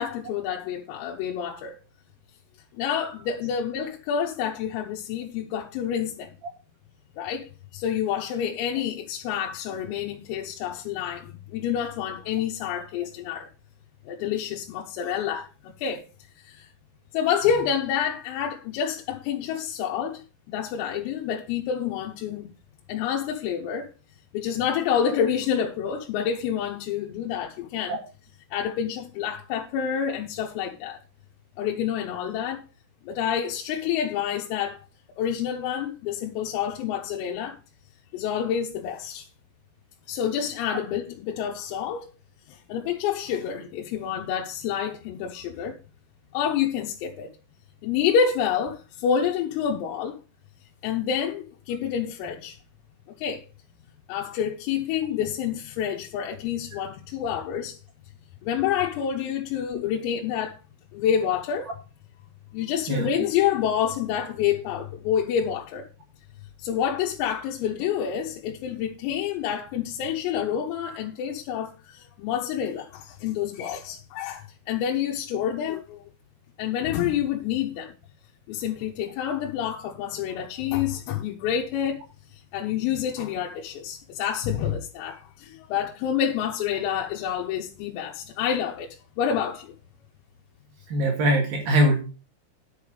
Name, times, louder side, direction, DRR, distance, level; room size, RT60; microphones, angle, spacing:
voice 1, 0.0-1.8 2.8-6.3 7.2-13.5 14.1-16.1 16.4-16.7 17.1-22.5 22.9-23.9 24.3-28.0 28.5-31.0 31.6-32.6 33.0-34.8 35.2-37.6 38.1-39.3 40.1-42.1 42.5-45.8 46.3-47.3 47.8-50.2 50.8-52.6 53.1-53.5 54.1-57.8 58.4-60.6 60.9-61.7 62.5-65.9 66.6-76.1 76.6-77.9 78.5-82.0 82.3-89.7, left 8 dB, 90° left, 3.8 m, -28 dB
voice 2, 90.9-92.0, right 1 dB, 55° right, 3.2 m, -22 dB
10.5 x 7.0 x 5.0 m
omnidirectional pair, 5.9 m